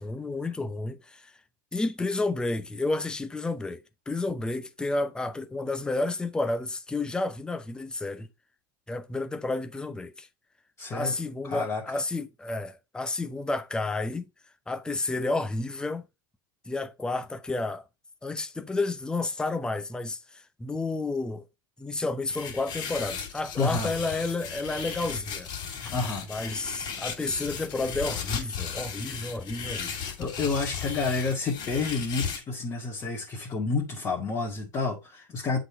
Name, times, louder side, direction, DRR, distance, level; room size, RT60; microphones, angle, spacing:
voice 1, 0.0-1.3 1.7-8.3 8.9-10.3 10.9-14.3 14.7-16.0 16.7-17.9 18.2-21.4 21.8-25.5 26.3-29.9, left 2 dB, 5° left, 0.7 m, -31 dB
voice 2, 10.8-11.1 11.5-11.8 23.6-23.9 25.8-26.3 29.8-35.6, left 4 dB, 25° left, 2.0 m, -30 dB
sound 1, 22.3-32.4, left 7 dB, 40° left, 2.8 m, -36 dB
7.9 x 4.1 x 4.4 m
supercardioid pair, 120°, 12 cm